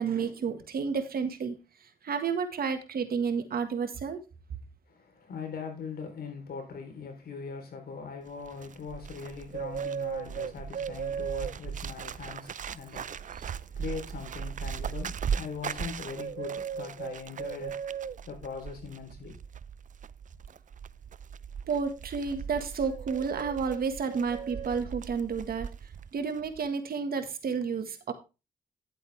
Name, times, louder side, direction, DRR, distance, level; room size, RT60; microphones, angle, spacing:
voice 1, 0.0-1.6 2.0-4.2 21.7-25.7 26.1-28.1, right 5 dB, 70° right, 1.8 m, -31 dB
voice 2, 4.9-17.8 18.3-19.3, left 5 dB, 75° left, 3.8 m, -41 dB
Bird, 8.3-26.1 26.3-26.7, right 7 dB, 55° right, 0.5 m, -37 dB
10.5 x 8.2 x 3.5 m
supercardioid pair, 55°, 16 cm